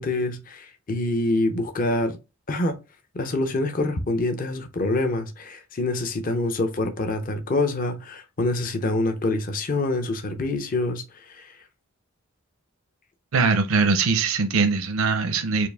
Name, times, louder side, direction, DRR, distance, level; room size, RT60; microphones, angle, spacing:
voice 1, 0.0-2.2 2.5-2.8 3.1-11.6, left 2 dB, 40° left, 0.6 m, -26 dB
voice 2, 13.3-15.7, right 4 dB, 80° right, 0.6 m, -21 dB
4.4 x 2.4 x 3.4 m
head